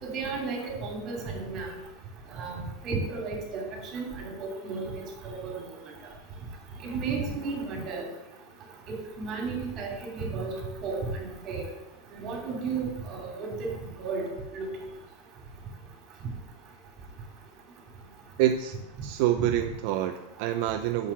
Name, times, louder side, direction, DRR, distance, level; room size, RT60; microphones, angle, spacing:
voice 1, 0.0-1.7 2.3-3.6 3.9-5.6 6.8-8.0 8.9-10.5 10.8-11.7 12.2-13.5 14.0-14.2 14.5-14.7, right 4 dB, 35° right, 0 dB, 2.8 m, -33 dB
voice 2, 18.4-18.7 19.0-21.1, right 12 dB, 55° right, 6 dB, 0.6 m, -26 dB
6.4 x 5.7 x 7.2 m, 0.95 s
supercardioid pair, 150°, 0 cm